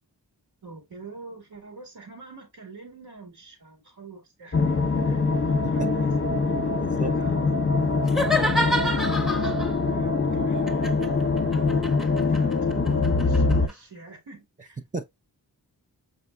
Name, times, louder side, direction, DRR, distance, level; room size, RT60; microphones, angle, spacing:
voice 1, 0.6-7.5 8.1-11.4 11.9-14.8, right 4 dB, 70° right, 2.0 m, -45 dB
sound 1, 4.5-13.7, left 4 dB, 30° left, 0.8 m, -23 dB
voice 2, 6.8-7.1 8.3-8.5 14.9-15.0, right 2 dB, 20° right, 0.5 m, -32 dB
sound 2, 8.0-9.8 10.7-13.7, left 1 dB, ahead, 1.0 m, -28 dB
5.4 x 4.3 x 2.2 m
cardioid pair, 55°, 42 cm